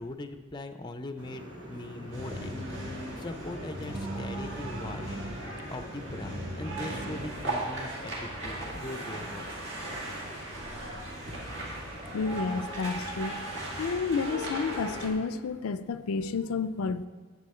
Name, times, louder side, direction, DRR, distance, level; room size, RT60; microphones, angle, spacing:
voice 1, 0.0-2.8 3.2-5.2 5.7-9.6, left 2 dB, 20° left, 8 dB, 0.5 m, -40 dB
sound 1, 1.2-7.4, equal, 80° right, 1.8 m, -44 dB
sound 2, 2.1-15.1, right 1 dB, 55° right, 2.1 m, -37 dB
voice 2, 12.1-13.4 13.7-17.1, left 5 dB, 85° left, 12 dB, 0.4 m, -30 dB
9.8 x 7.2 x 4.3 m, 1.5 s
head